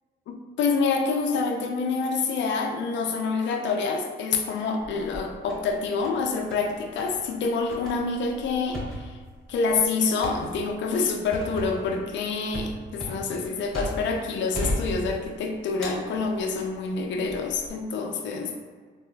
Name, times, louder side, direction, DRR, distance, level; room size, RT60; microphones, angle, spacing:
voice 1, 0.3-9.2 9.5-18.6, left 4 dB, 65° left, 3 dB, 0.5 m, -27 dB
sound 1, 4.8-5.7 6.0-6.7 7.0-7.2 7.7-14.2 14.5-15.4 15.8-16.7 17.3-17.7, left 1 dB, 5° left, 1.4 m, -35 dB
3.7 x 2.5 x 2.7 m, 1.5 s
cardioid pair, 90°, 20 cm